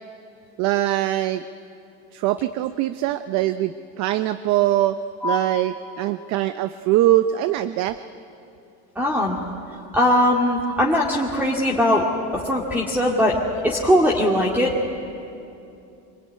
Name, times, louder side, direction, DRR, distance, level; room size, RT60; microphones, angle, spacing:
voice 1, 0.6-1.4 2.1-5.0 5.2-8.0, right 14 dB, 55° right, 11 dB, 0.8 m, -22 dB
voice 2, 9.0-9.4 9.9-12.1 12.3-14.7, left 1 dB, 5° right, -2 dB, 2.2 m, -20 dB
25.5 x 20.0 x 9.6 m, 2.7 s
supercardioid pair, 135°, 33 cm